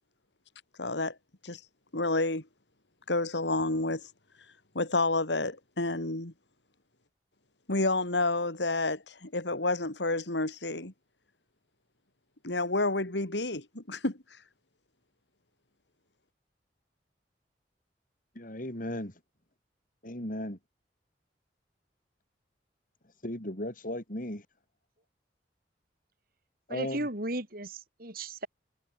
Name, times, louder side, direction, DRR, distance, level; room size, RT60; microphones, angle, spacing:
voice 1, 0.8-1.2 1.4-1.6 1.9-2.4 3.1-4.1 4.7-6.3 7.7-10.9 12.4-14.2, left 2 dB, 75° left, 3.1 m, -29 dB
voice 2, 18.3-19.2 20.0-20.6 23.2-24.5 26.7-27.1, left 1 dB, 50° left, 4.8 m, -36 dB
voice 3, 26.7-28.5, right 1 dB, 55° right, 6.2 m, -35 dB
head